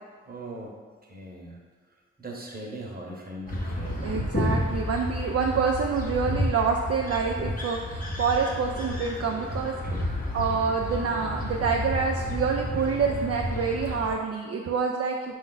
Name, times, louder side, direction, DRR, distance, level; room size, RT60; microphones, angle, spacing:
voice 1, 0.3-0.8 1.1-1.6 2.2-4.1 9.4-9.5 9.8-10.1, right 1 dB, 30° right, -1 dB, 1.0 m, -40 dB
sound 1, 3.5-14.1, left 1 dB, 30° left, 1.0 m, -31 dB
voice 2, 4.0-9.7 10.3-15.3, right 5 dB, 50° right, 0 dB, 0.5 m, -27 dB
5.0 x 2.6 x 3.9 m, 1.5 s
cardioid pair, 50°, 31 cm